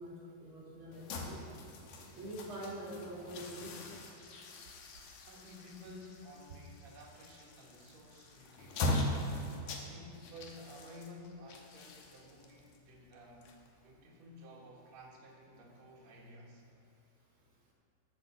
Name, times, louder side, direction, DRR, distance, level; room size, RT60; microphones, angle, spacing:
voice 1, 0.0-1.4 2.1-3.7, right 1 dB, 40° right, -4 dB, 2.3 m, -45 dB
sound 1, 0.9-14.0, left 1 dB, 80° left, 1.6 m, -41 dB
voice 2, 5.3-9.0 9.7-13.6 13.8-16.6, left 1 dB, 60° right, -2 dB, 2.0 m, -53 dB
8.0 x 7.9 x 6.9 m, 2.8 s
omnidirectional pair, 4.6 m